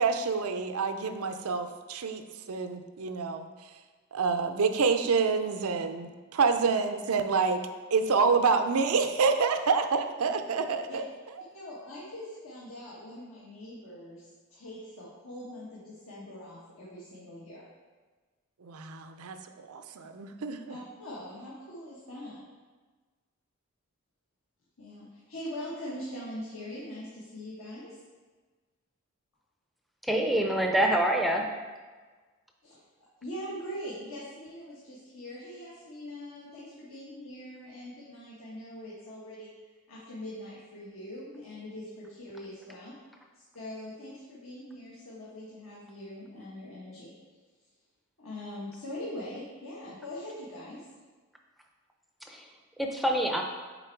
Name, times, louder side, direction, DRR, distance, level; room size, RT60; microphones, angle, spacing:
voice 1, 0.0-3.8 4.1-7.6 7.9-11.0 18.6-20.8, right 5 dB, 85° right, 8 dB, 0.5 m, -28 dB
voice 2, 11.5-17.6 20.7-22.4 24.8-28.0 32.6-32.8 33.2-39.5 39.9-43.0 43.3-47.1 48.2-50.8, left 1 dB, 75° left, -8 dB, 1.4 m, -42 dB
voice 3, 30.0-31.4 52.3-52.4 52.8-53.4, right 1 dB, ahead, 1 dB, 0.5 m, -26 dB
6.9 x 4.3 x 4.5 m, 1.4 s
head